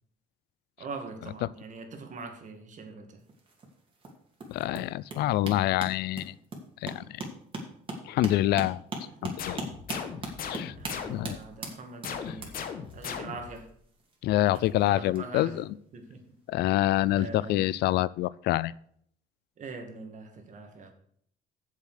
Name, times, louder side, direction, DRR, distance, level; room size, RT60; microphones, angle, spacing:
voice 1, 0.8-3.2 9.2-9.3 10.8-12.5 12.9-13.7 14.5-15.6 15.9-16.2 17.1-17.6 19.6-20.9, right 3 dB, 45° right, 5 dB, 2.2 m, -42 dB
sound 1, 3.2-15.2 16.2-16.4 16.7-16.8, right 2 dB, 30° right, 2.6 m, -40 dB
voice 2, 4.5-6.3 6.8-7.2 8.1-8.8 9.2-9.6 10.4-10.7 11.1-11.4 12.2-12.4 14.2-15.7 16.5-18.7, left 15 dB, 75° left, 20 dB, 0.4 m, -26 dB
sound 2, 9.4-11.5 12.0-13.6, left 7 dB, 60° left, 1.5 m, -38 dB
7.5 x 7.4 x 6.5 m, 0.64 s
cardioid pair, 110°, 17 cm